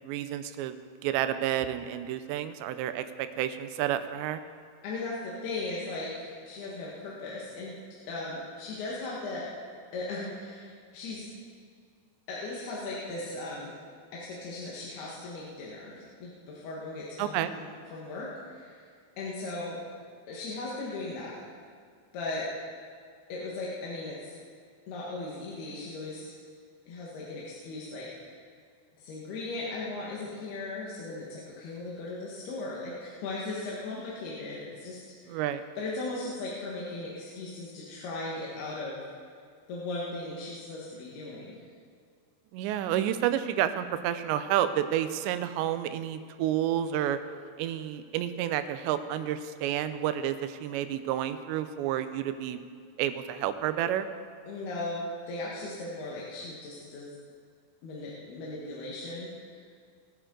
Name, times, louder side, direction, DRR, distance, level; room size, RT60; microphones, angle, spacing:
voice 1, 0.0-0.8 1.0-4.4 17.2-17.5 35.3-35.6 42.5-47.2 47.6-52.6 53.0-54.1, right 11 dB, 90° right, 11 dB, 2.9 m, -30 dB
voice 2, 4.8-7.8 8.1-9.5 9.9-11.3 12.3-13.7 14.1-18.8 19.2-19.8 20.3-21.4 22.1-22.5 23.3-24.3 24.9-26.4 26.9-28.4 29.0-35.4 35.8-39.0 39.7-41.6 54.5-55.0 55.3-57.1 57.8-59.3, left 2 dB, 70° left, -5 dB, 3.3 m, -37 dB
21.5 x 9.3 x 3.8 m, 2.1 s
omnidirectional pair, 4.9 m